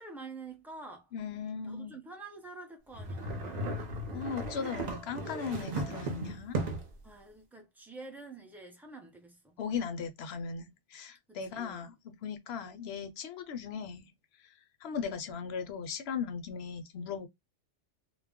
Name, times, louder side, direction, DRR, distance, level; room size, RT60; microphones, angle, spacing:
voice 1, 0.0-1.1 1.6-4.0 7.0-9.6 11.3-11.9, right 3 dB, 5° right, 0.3 m, -48 dB
voice 2, 1.1-2.0 4.1-6.6 9.6-14.1 14.8-17.3, left 6 dB, 65° left, 0.7 m, -38 dB
sound 1, 2.9-7.0, right 2 dB, 45° right, 0.6 m, -36 dB
2.3 x 2.0 x 3.5 m
omnidirectional pair, 1.2 m